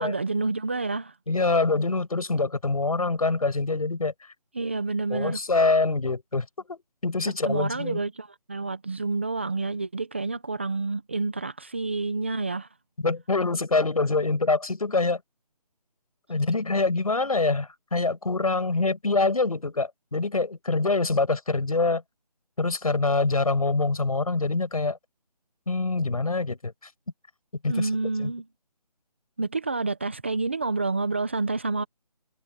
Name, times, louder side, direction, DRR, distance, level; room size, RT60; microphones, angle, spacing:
voice 1, 0.0-1.1 4.5-5.4 7.4-12.7 27.7-28.4 29.4-31.8, right 3 dB, 15° right, 1.1 m, -28 dB
voice 2, 1.3-4.1 5.1-8.0 13.0-15.2 16.3-22.0 22.6-25.0 25.7-26.7 27.6-27.9 28.2-28.3, left 3 dB, 60° left, 7.4 m, -25 dB
figure-of-eight pair, 180°, 21 cm